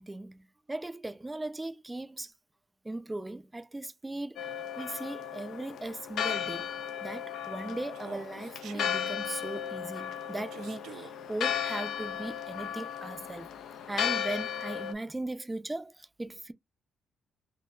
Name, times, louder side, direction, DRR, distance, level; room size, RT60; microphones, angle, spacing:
voice 1, 0.0-2.3 2.8-4.5 4.8-6.7 7.0-13.5 13.9-16.5, right 2 dB, 15° right, 0.5 m, -38 dB
Church bell, 4.4-14.9, left 9 dB, 70° left, 0.4 m, -35 dB
Human voice, 7.9-8.9 10.5-11.1, right 8 dB, 80° right, 0.7 m, -47 dB
3.7 x 2.6 x 2.4 m
cardioid pair, 90°, 0 cm